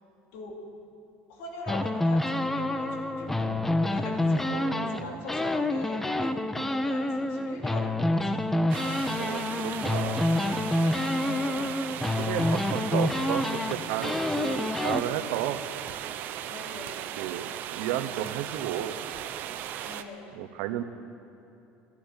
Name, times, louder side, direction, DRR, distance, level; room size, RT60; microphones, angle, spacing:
voice 1, 1.3-8.3 8.9-9.2 11.2-11.8 16.4-17.1 19.8-20.3, left 2 dB, 70° left, 1 dB, 2.5 m, -42 dB
sound 1, 1.7-5.0 5.3-15.0, left 1 dB, 5° left, 0.5 m, -27 dB
voice 2, 4.5-5.2 9.1-10.3 12.2-15.6 17.2-18.9 20.3-20.8, right 12 dB, 80° right, 10 dB, 0.9 m, -33 dB
sound 2, 8.7-20.0, right 11 dB, 50° right, 0.6 m, -37 dB
12.0 x 11.5 x 8.9 m, 2.8 s
cardioid pair, 145°, 4 cm